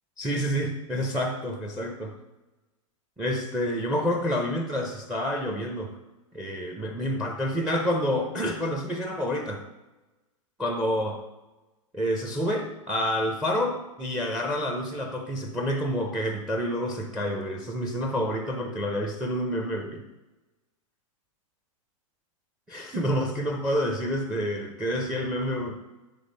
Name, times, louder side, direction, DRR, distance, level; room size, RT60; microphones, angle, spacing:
voice 1, 0.2-2.2 3.2-6.0 6.3-9.6 10.6-11.2 11.9-20.1 22.7-25.8, equal, 5° right, 4 dB, 0.5 m, -28 dB
9.1 x 3.9 x 5.2 m, 1.1 s
supercardioid pair, 160°, 17 cm